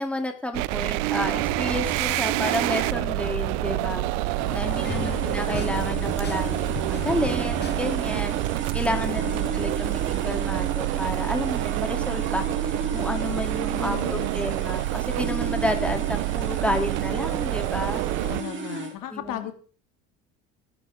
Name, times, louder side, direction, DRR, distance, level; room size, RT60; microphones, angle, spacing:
voice 1, 0.0-4.0 4.5-8.4 8.7-18.0 19.1-19.5, left 1 dB, 5° left, 4 dB, 3.2 m, -31 dB
sound 1, 0.5-18.4, right 18 dB, 75° right, 0.7 m, -27 dB
sound 2, 1.3-7.8, left 7 dB, 30° left, 0.9 m, -37 dB
sound 3, 4.2-18.9, right 6 dB, 30° right, 4.0 m, -34 dB
voice 2, 4.4-5.8 8.9-9.5 13.7-14.3 18.2-19.5, left 12 dB, 60° left, 7 dB, 2.5 m, -37 dB
22.0 x 11.5 x 3.8 m, 0.40 s
supercardioid pair, 95°, 37 cm